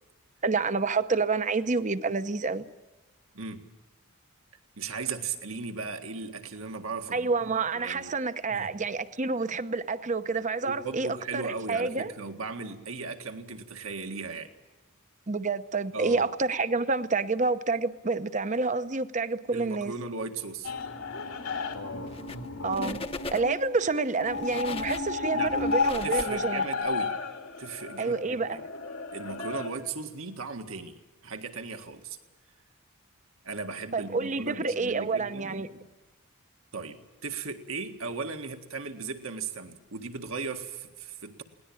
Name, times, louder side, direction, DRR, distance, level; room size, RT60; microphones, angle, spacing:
voice 1, 0.4-2.7 7.1-12.1 15.3-19.9 22.6-26.7 28.0-28.6 33.9-35.7, right 4 dB, 35° right, 0.8 m, -28 dB
voice 2, 3.3-3.7 4.8-8.1 8.5-8.7 10.6-14.5 15.9-16.3 19.5-20.7 24.5-25.0 25.3-25.6 26.0-27.2 27.6-28.6 29.1-32.2 33.4-35.9 36.7-41.4, right 4 dB, 70° right, 1.9 m, -37 dB
sound 1, 20.6-29.7, left 4 dB, 85° left, 2.9 m, -32 dB
sound 2, 22.1-22.5 22.7-23.7 24.2-26.9, left 3 dB, 25° left, 0.9 m, -40 dB
21.5 x 18.5 x 8.7 m
head